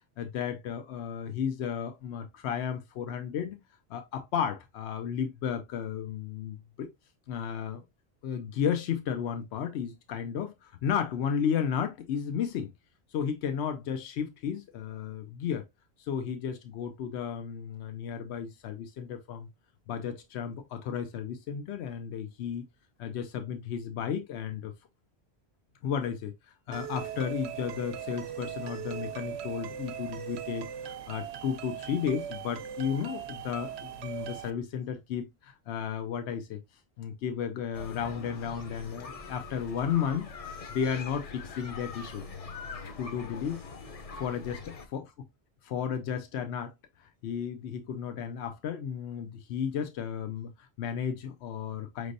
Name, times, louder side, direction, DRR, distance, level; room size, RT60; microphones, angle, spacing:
voice 1, 0.2-3.6 3.9-6.9 7.3-7.8 8.2-12.7 13.1-15.6 16.0-19.5 19.9-22.6 23.0-24.7 25.8-26.3 26.7-36.6 37.0-42.2 43.0-43.6 44.1-45.0 45.6-46.7 47.0-52.1, left 7 dB, 90° left, 0.9 m, -33 dB
sound 1, 26.7-34.5, right 9 dB, 80° right, 0.8 m, -39 dB
sound 2, 37.7-44.9, left 4 dB, 40° left, 0.6 m, -43 dB
5.1 x 3.3 x 2.5 m
omnidirectional pair, 1.1 m